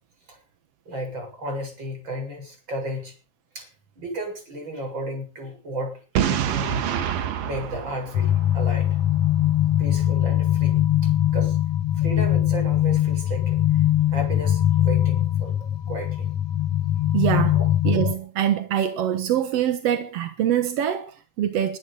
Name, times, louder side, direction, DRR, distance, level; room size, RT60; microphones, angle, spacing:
voice 1, 0.9-3.1 3.5-7.1 7.4-9.0 9.8-11.6 11.9-15.5 15.9-16.3 17.5-17.6, equal, 35° right, 7.8 m, -34 dB
Boom, 6.2-9.0, right 9 dB, 80° right, 3.1 m, -26 dB
sound 1, 8.1-18.1, left 12 dB, 55° left, 2.4 m, -21 dB
voice 2, 17.1-17.6 17.8-21.8, right 10 dB, 60° right, 1.9 m, -24 dB
22.0 x 11.5 x 5.5 m
omnidirectional pair, 3.8 m